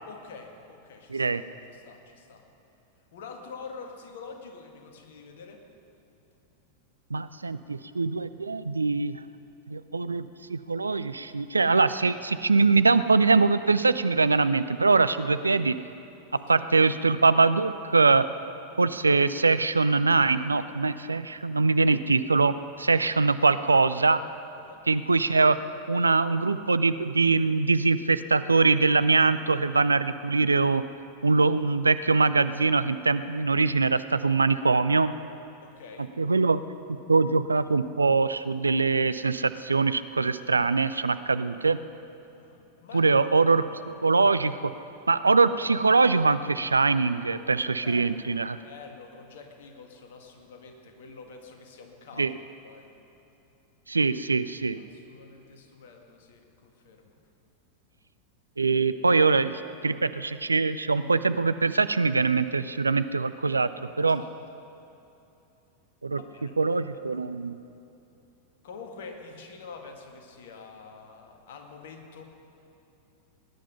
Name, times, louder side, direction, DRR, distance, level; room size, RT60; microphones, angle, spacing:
voice 1, 0.1-1.4 1.7-2.4 3.1-5.6 16.3-16.7 24.6-24.8 35.6-36.1 42.4-43.1 47.8-52.3 52.6-52.9 54.8-57.2 63.8-64.3 66.1-66.6 67.1-67.2 68.6-72.2, left 5 dB, 55° left, 3 dB, 1.7 m, -46 dB
voice 2, 1.1-1.4 7.1-9.2 9.7-15.7 16.5-18.2 18.8-24.2 24.9-25.6 25.9-30.8 31.2-35.1 36.2-36.6 37.1-41.8 42.9-43.6 44.0-44.6 45.1-48.6 52.2-52.3 53.9-54.8 58.6-63.7 64.0-64.2 66.0-66.2 66.6-67.6, right 4 dB, 80° right, 13 dB, 0.4 m, -23 dB
19.0 x 10.0 x 5.6 m, 2.9 s
figure-of-eight pair, 90°, 0 cm